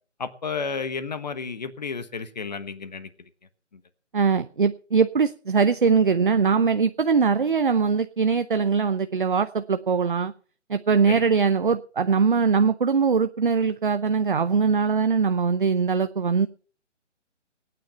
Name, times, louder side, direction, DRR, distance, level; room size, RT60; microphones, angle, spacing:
voice 1, 0.2-3.3 3.7-3.8 11.1-11.2, left 5 dB, 35° left, 12 dB, 1.2 m, -32 dB
voice 2, 4.1-10.3 10.7-16.5, right 5 dB, 45° right, 11 dB, 0.6 m, -21 dB
18.0 x 9.4 x 5.6 m, 0.41 s
hypercardioid pair, 170°, 37 cm